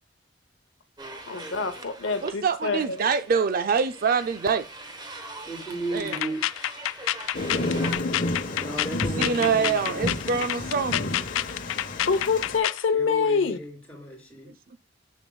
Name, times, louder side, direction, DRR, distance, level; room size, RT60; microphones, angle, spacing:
sound 1, 1.0-8.0, right 2 dB, 20° right, 1.0 m, -42 dB
voice 1, 1.3-2.9 10.9-11.0 12.1-13.6, left 5 dB, 70° left, 0.7 m, -26 dB
voice 2, 2.2-4.7 5.9-6.3 9.2-11.0, right 5 dB, 50° right, 0.4 m, -25 dB
voice 3, 5.5-6.4 8.5-10.5 12.9-14.5, right 1 dB, 10° left, 3.5 m, -35 dB
sound 2, 6.0-12.8, left 13 dB, 85° left, 0.3 m, -29 dB
Thunder, 7.3-12.6, left 1 dB, 45° left, 1.1 m, -31 dB
7.3 x 6.9 x 2.3 m
head